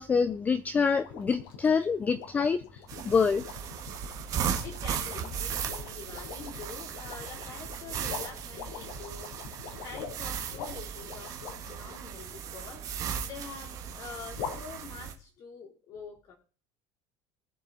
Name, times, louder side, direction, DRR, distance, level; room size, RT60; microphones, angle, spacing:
voice 1, 0.0-2.6 3.0-3.5, left 5 dB, 15° left, 12 dB, 0.5 m, -26 dB
sound 1, 1.0-12.0 14.3-14.6, left 7 dB, 90° left, 4.6 m, -43 dB
sound 2, 2.9-15.1, right 8 dB, 35° right, 1.9 m, -37 dB
voice 2, 4.6-9.3 9.8-16.4, left 5 dB, 40° left, -5 dB, 3.5 m, -46 dB
21.5 x 7.3 x 4.2 m, 0.40 s
cardioid pair, 180°, 10 cm